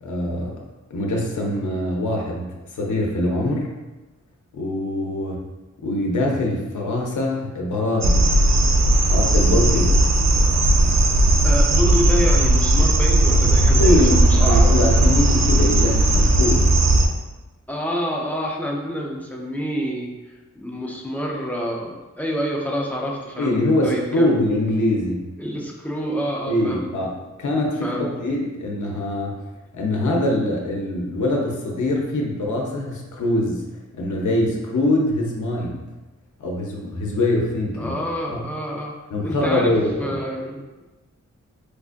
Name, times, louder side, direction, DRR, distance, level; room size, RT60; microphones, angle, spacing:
voice 1, 0.0-0.6 0.9-3.7 4.5-5.4 5.8-8.3 9.1-10.0 13.7-16.7 23.4-25.3 26.5-27.1 27.4-29.4 29.7-33.6 33.9-35.8 36.4-38.0 38.3-38.5 39.1-40.2, left 1 dB, 85° left, -1 dB, 0.7 m, -23 dB
sound 1, 8.0-17.1, right 1 dB, 65° right, 0.5 m, -16 dB
voice 2, 11.4-14.7 17.7-20.2 20.6-24.3 25.4-26.9 27.8-28.1 37.8-39.0 39.2-40.6, equal, 5° left, -2 dB, 0.5 m, -28 dB
4.6 x 2.4 x 2.5 m, 1.1 s
wide cardioid pair, 105°, 29 cm